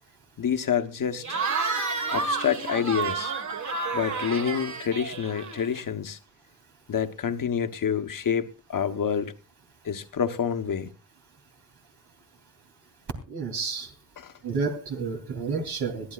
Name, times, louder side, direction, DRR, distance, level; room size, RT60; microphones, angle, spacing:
voice 1, 0.4-1.4 2.1-3.3 3.9-6.2 6.9-9.3 9.8-10.9 14.2-14.3, left 7 dB, 55° left, 1.1 m, -28 dB
Cheering / Crowd, 1.2-5.8, right 4 dB, 45° right, 1.6 m, -30 dB
voice 2, 13.3-13.9 14.4-16.1, right 5 dB, 75° right, 3.1 m, -30 dB
21.5 x 14.0 x 2.4 m
cardioid pair, 85°, 39 cm